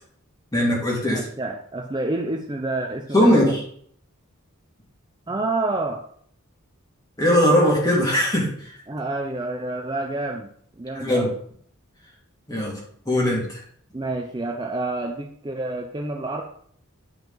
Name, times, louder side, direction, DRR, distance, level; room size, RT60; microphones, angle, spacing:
voice 1, 0.5-1.2 3.1-3.6 7.2-8.7 10.9-11.3 12.5-12.8 13.1-13.6, equal, 15° left, -3 dB, 2.3 m, -20 dB
voice 2, 1.0-3.6 5.3-6.0 8.9-11.3 13.9-16.4, right 2 dB, 20° right, 2 dB, 0.6 m, -28 dB
9.0 x 5.3 x 3.9 m, 0.62 s
head